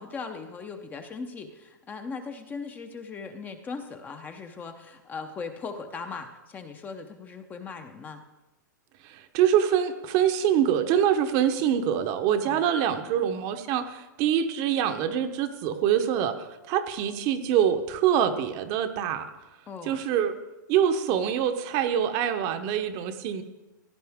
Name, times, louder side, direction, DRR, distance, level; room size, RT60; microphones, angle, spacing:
voice 1, 0.0-8.2 12.4-12.6 19.7-20.0, left 5 dB, 15° left, 7 dB, 0.7 m, -39 dB
voice 2, 9.0-19.3 19.9-20.3 20.7-23.4, right 9 dB, 35° right, 8 dB, 0.8 m, -25 dB
16.0 x 10.5 x 3.6 m, 1.0 s
hypercardioid pair, 150°, 11 cm